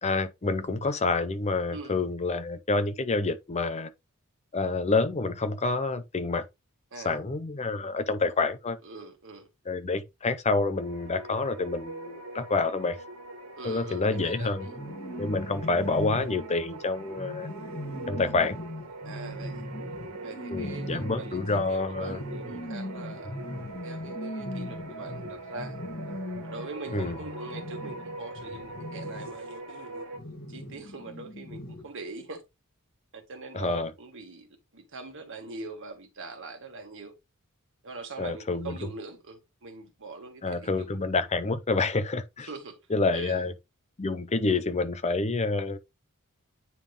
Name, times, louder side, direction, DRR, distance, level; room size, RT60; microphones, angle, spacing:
voice 1, 0.0-3.9 4.5-6.5 7.0-8.8 9.7-13.0 13.6-14.7 15.2-17.5 18.1-18.6 20.5-22.2 23.2-23.3 26.9-27.2 33.5-33.9 38.2-38.9 40.4-42.5 42.9-43.5 44.0-45.8, left 3 dB, 30° left, 0.6 m, -28 dB
voice 2, 8.8-9.5 13.6-14.8 19.0-19.6 20.2-23.3 23.8-25.8 26.4-30.0 30.5-32.4 33.1-34.5 34.7-37.1 37.8-40.9 42.5-42.8 43.1-43.4, right 3 dB, 60° right, 1.7 m, -42 dB
sound 1, 10.7-30.2, right 2 dB, 90° right, 1.6 m, -42 dB
sound 2, 14.7-29.4 30.1-32.0, left 1 dB, 45° left, 2.4 m, -39 dB
9.3 x 3.5 x 3.4 m
head